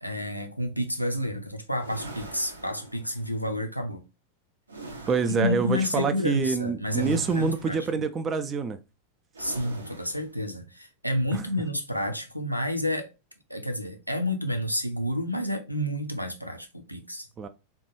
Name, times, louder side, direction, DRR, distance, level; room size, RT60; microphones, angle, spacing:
voice 1, 0.0-4.0 5.3-7.9 9.4-13.1 13.5-17.3, left 1 dB, 90° left, 0.5 m, -30 dB
sound 1, 1.8-3.4 4.7-5.6 6.8-7.9 9.3-10.3, right 2 dB, 75° right, 0.6 m, -43 dB
voice 2, 5.1-8.8 17.4-17.5, right 5 dB, 25° right, 0.4 m, -26 dB
3.6 x 2.2 x 3.1 m
figure-of-eight pair, 90°, 0 cm